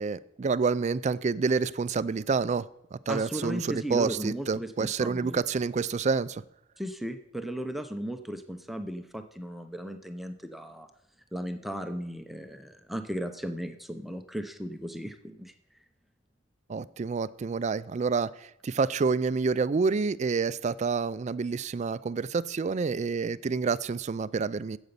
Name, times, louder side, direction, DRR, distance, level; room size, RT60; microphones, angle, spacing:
voice 1, 0.0-6.4 16.7-24.8, right 4 dB, 35° right, 17 dB, 0.3 m, -28 dB
voice 2, 3.1-4.7 5.0-5.4 6.8-10.9 11.3-15.5, equal, ahead, 7 dB, 0.6 m, -36 dB
9.2 x 8.0 x 6.8 m, 0.78 s
head